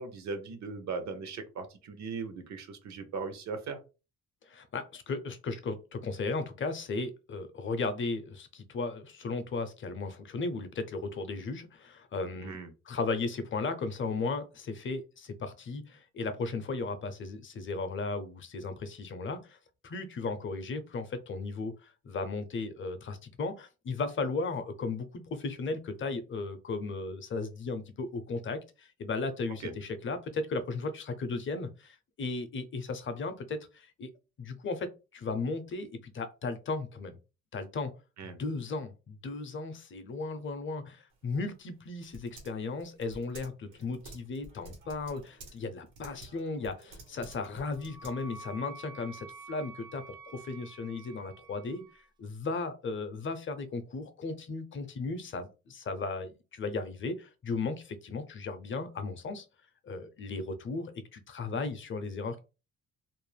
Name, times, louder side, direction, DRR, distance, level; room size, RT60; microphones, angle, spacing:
voice 1, 0.0-3.8 12.4-12.7 29.6-29.7 38.2-38.4, right 4 dB, 65° right, 8 dB, 0.8 m, -38 dB
voice 2, 4.5-12.6 12.9-19.6 19.8-34.1 34.4-37.2 37.5-37.9 38.2-51.8 52.2-59.5 59.8-62.4, left 3 dB, 40° left, 9 dB, 0.6 m, -36 dB
Typing, 41.1-48.6, right 2 dB, 85° right, 1.2 m, -52 dB
Wind instrument woodwind instrument, 47.3-52.1, right 3 dB, 15° right, 0.4 m, -49 dB
2.6 x 2.1 x 3.2 m, 0.31 s
cardioid pair, 90°, 30 cm